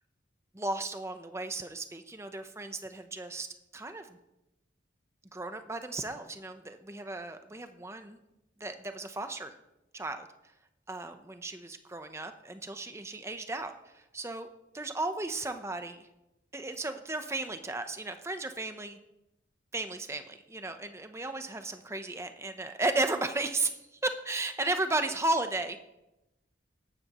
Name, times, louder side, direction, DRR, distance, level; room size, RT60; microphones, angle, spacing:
voice 1, 0.5-3.5 3.7-4.2 5.3-8.2 8.6-9.5 9.9-10.3 10.9-14.5 14.7-16.1 16.5-19.0 19.7-25.8, right 2 dB, 15° right, 8 dB, 0.7 m, -34 dB
15.5 x 12.0 x 3.0 m, 0.92 s
head